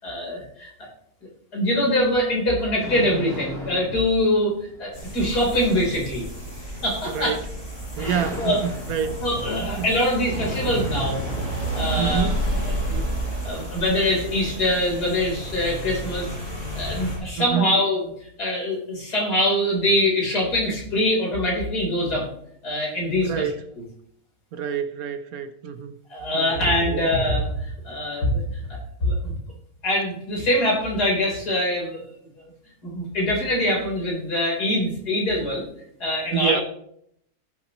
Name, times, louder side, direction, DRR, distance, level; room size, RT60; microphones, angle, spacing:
voice 1, 0.0-0.9 1.5-6.2 6.8-7.3 8.0-8.6 9.2-11.2 11.7-12.3 12.7-13.0 13.4-16.3 16.7-18.0 18.4-22.3 22.6-23.4 26.1-29.3 29.8-32.0 32.8-35.6 36.0-36.6, left 1 dB, 75° left, 4.2 m, -24 dB
sound 1, 1.7-12.1, left 2 dB, ahead, 2.4 m, -38 dB
sound 2, 4.9-17.2, right 1 dB, 45° left, 6.2 m, -30 dB
voice 2, 7.1-7.5 8.0-9.2 9.6-9.9 12.0-12.4 17.4-17.8 23.2-23.7 24.5-25.9 26.3-27.0 36.3-36.6, right 7 dB, 65° right, 1.2 m, -27 dB
18.0 x 7.6 x 3.0 m
omnidirectional pair, 1.7 m